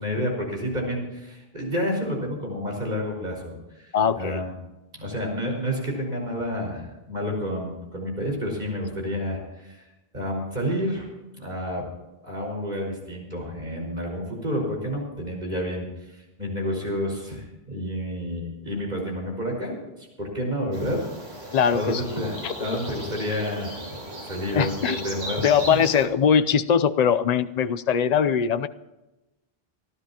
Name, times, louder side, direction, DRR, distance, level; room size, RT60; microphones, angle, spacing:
voice 1, 0.0-4.5 5.0-9.8 10.1-11.1 11.3-11.9 12.2-24.0 24.3-25.4, equal, 45° right, 0 dB, 5.4 m, -30 dB
voice 2, 3.9-4.4 21.5-22.0 22.4-22.5 24.5-25.0 25.4-28.7, left 7 dB, 45° left, 11 dB, 0.7 m, -21 dB
sound 1, 20.7-26.1, right 1 dB, 85° right, 4.0 m, -37 dB
26.0 x 12.5 x 2.9 m, 1.0 s
omnidirectional pair, 1.1 m